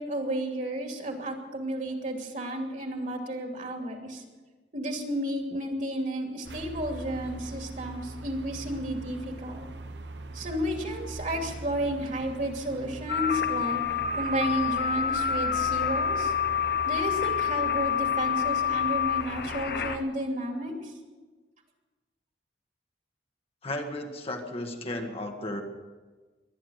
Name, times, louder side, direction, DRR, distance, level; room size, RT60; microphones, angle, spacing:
voice 1, 0.0-4.2 4.7-9.6 10.3-13.8 14.1-16.3 16.8-20.9, right 1 dB, 45° right, 3 dB, 2.7 m, -32 dB
sound 1, 6.4-20.0, right 2 dB, 70° right, 1.0 m, -42 dB
Freq Stays Up, 13.1-20.0, left 8 dB, 60° left, 1.0 m, -28 dB
voice 2, 23.6-25.6, left 1 dB, 35° left, 3 dB, 1.5 m, -34 dB
22.5 x 9.9 x 6.5 m, 1.3 s
head